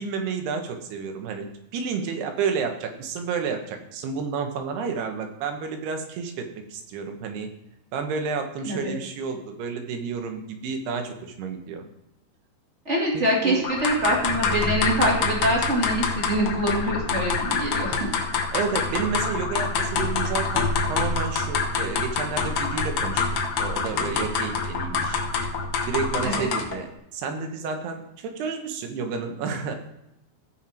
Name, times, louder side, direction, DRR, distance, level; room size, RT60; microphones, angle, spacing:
voice 1, 0.0-1.5 1.7-7.5 7.9-11.8 13.1-13.6 18.5-25.2 25.9-29.7, right 5 dB, 80° right, 5 dB, 3.2 m, -30 dB
voice 2, 8.6-8.9 12.9-18.1 26.2-26.5, right 1 dB, 20° right, -3 dB, 2.0 m, -25 dB
sound 1, 13.6-26.8, left 4 dB, 80° left, 1.4 m, -26 dB
16.0 x 5.8 x 4.5 m, 0.85 s
omnidirectional pair, 4.7 m